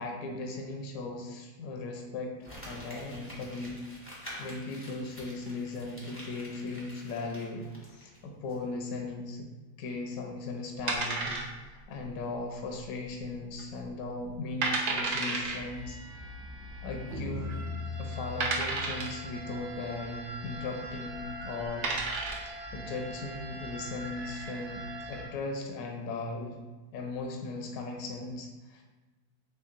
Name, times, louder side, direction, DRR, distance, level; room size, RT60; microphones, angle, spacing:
voice 1, 0.0-3.8 4.2-9.5 9.8-16.0 16.8-17.6 18.0-21.9 22.4-26.6 26.9-28.8, left 3 dB, 70° left, 2 dB, 0.9 m, -38 dB
Crumpling crinkling, 2.4-8.2 8.5-8.6, equal, 10° left, 0.6 m, -47 dB
sound 1, 10.9-11.8 12.1-12.2 12.8-13.2 13.6-13.7 14.3-14.4 14.6-15.6 16.7-16.8 17.4-17.5 18.4-19.2 21.1-21.2 21.6-22.5, right 3 dB, 70° right, 0.5 m, -31 dB
sound 2, 15.4-25.2, equal, 55° right, 0.9 m, -41 dB
4.4 x 3.4 x 2.4 m, 1.2 s
omnidirectional pair, 1.8 m